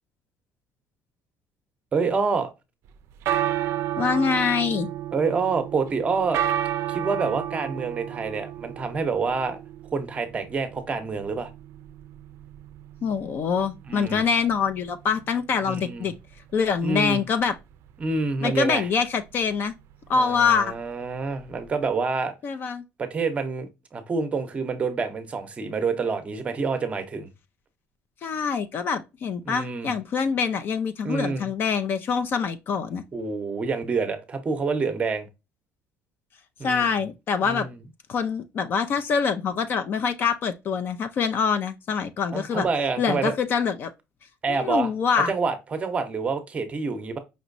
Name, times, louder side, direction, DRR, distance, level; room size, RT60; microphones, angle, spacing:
voice 1, 1.9-2.5 5.1-6.4 6.9-9.6 9.9-11.5 13.9-14.2 15.6-16.1 16.8-17.2 18.0-18.9 20.1-22.3 23.0-27.3 29.4-29.9 31.0-31.5 33.1-35.3 36.6-36.9 37.4-37.8 42.3-43.3 44.4-44.9 45.3-47.2, right 4 dB, 25° right, 0.7 m, -27 dB
sound 1, 2.9-22.0, right 11 dB, 60° right, 0.4 m, -33 dB
voice 2, 4.0-4.9 13.0-16.1 16.5-17.5 18.4-19.7 20.1-20.7 22.4-22.8 28.2-33.0 36.6-37.7 38.1-42.7 43.0-43.9 44.5-45.3, left 6 dB, 40° left, 0.4 m, -25 dB
5.2 x 2.9 x 2.6 m
cardioid pair, 145°, 5 cm